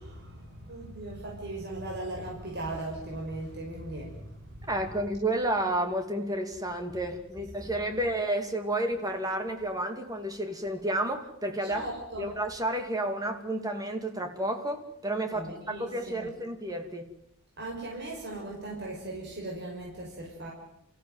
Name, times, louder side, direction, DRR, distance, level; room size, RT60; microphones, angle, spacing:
voice 1, 0.0-4.5 7.9-8.0 11.7-12.3 15.3-16.3 17.6-20.5, right 2 dB, 50° right, -2 dB, 6.1 m, -38 dB
voice 2, 4.7-11.9 12.2-17.1, right 1 dB, 15° right, 5 dB, 2.7 m, -31 dB
29.0 x 15.5 x 9.4 m, 0.80 s
head